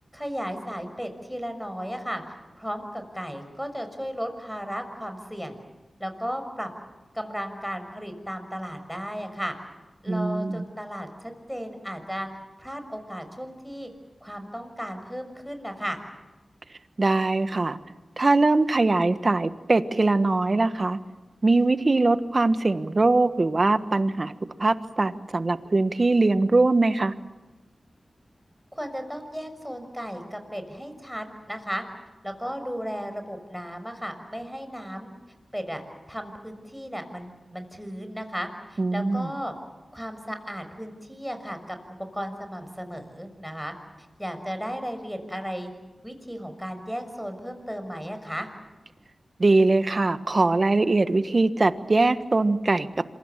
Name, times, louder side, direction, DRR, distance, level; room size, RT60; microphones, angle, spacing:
voice 1, 0.1-2.2 2.5-5.6 6.0-6.7 7.1-9.5 10.0-12.3 12.6-13.9 14.2-16.0 28.7-31.8 32.2-35.1 35.5-39.5 39.9-41.8 42.1-43.7 44.2-45.7 46.0-48.5, equal, ahead, 7 dB, 6.2 m, -35 dB
voice 2, 10.1-10.6 17.0-17.8 18.2-21.0 21.4-24.3 24.6-27.1 38.8-39.3 49.4-52.9, right 2 dB, 50° right, 11 dB, 1.4 m, -22 dB
27.0 x 23.5 x 7.5 m, 1.1 s
cardioid pair, 40°, 0 cm